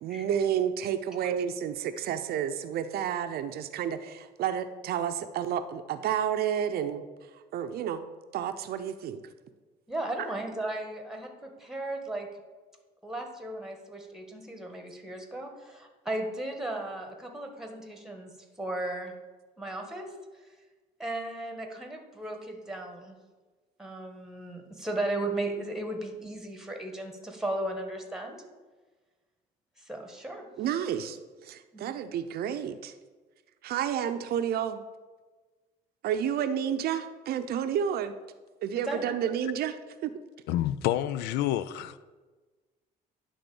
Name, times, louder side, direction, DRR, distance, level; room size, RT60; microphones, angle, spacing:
voice 1, 0.0-7.0 7.5-8.0 8.3-9.2 30.6-32.9 33.6-34.8 36.0-38.1 38.6-39.8 40.0-40.1, right 9 dB, 65° right, 0.6 m, -30 dB
voice 2, 9.9-12.3 13.0-18.3 18.6-19.1 19.6-20.1 21.0-23.2 23.8-28.4 29.8-30.5 31.7-31.9 38.7-39.1, right 1 dB, 5° right, 1.5 m, -36 dB
voice 3, 40.5-42.0, left 12 dB, 85° left, 0.4 m, -28 dB
10.5 x 3.8 x 6.9 m
cardioid pair, 110°, 17 cm